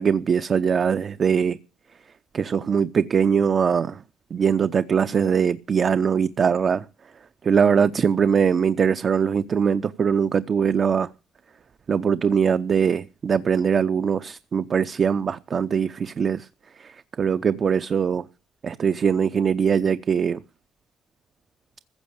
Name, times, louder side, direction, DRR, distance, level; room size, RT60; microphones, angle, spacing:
voice 1, 0.0-1.6 2.3-4.0 4.3-6.9 7.4-11.1 11.9-16.5 16.8-18.2 18.6-20.4, right 6 dB, 50° right, 0.6 m, -22 dB
15.0 x 6.3 x 8.8 m
cardioid pair, 90°, 0 cm